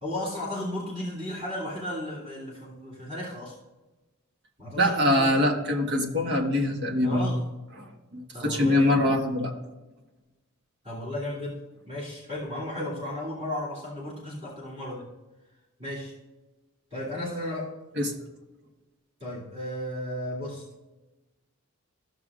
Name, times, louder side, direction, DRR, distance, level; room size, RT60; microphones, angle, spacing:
voice 1, 0.0-3.6 4.6-5.5 7.0-7.4 8.3-9.1 10.8-15.1 15.8-16.1 16.9-17.7 19.2-20.6, left 1 dB, 30° right, -9 dB, 2.7 m, -34 dB
voice 2, 4.8-7.3 7.7-7.8 8.1-9.5 17.9-18.1, left 1 dB, 50° right, 2 dB, 1.4 m, -24 dB
14.5 x 6.7 x 2.5 m, 1.1 s
head